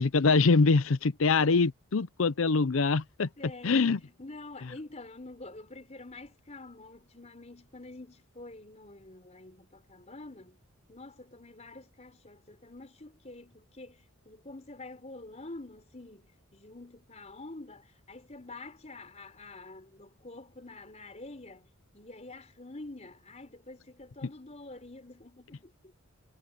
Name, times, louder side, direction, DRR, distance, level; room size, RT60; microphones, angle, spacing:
voice 1, 0.0-3.3 3.6-4.0, left 4 dB, 70° left, 0.6 m, -24 dB
voice 2, 3.4-10.6 10.9-21.7 21.9-26.0, left 2 dB, 30° left, 4.1 m, -47 dB
head